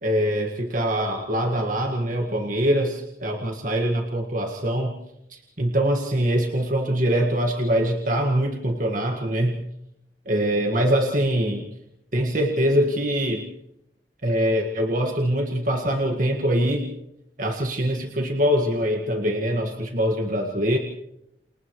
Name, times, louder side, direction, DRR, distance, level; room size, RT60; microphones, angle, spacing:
voice 1, 0.0-4.9 5.3-9.6 10.3-11.7 12.1-13.5 14.2-16.9 17.4-20.8, equal, 50° right, 2 dB, 1.8 m, -23 dB
29.5 x 28.0 x 3.2 m, 0.80 s
head